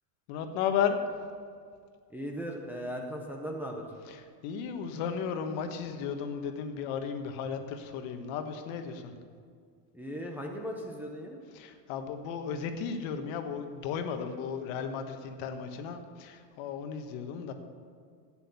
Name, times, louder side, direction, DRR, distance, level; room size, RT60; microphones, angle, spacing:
voice 1, 0.3-1.0 4.0-9.1 11.5-17.5, left 7 dB, 55° left, 7 dB, 1.4 m, -34 dB
voice 2, 2.1-3.8 9.9-11.4, equal, 5° right, 0 dB, 0.6 m, -37 dB
11.5 x 9.0 x 6.9 m, 2.1 s
supercardioid pair, 150°, 49 cm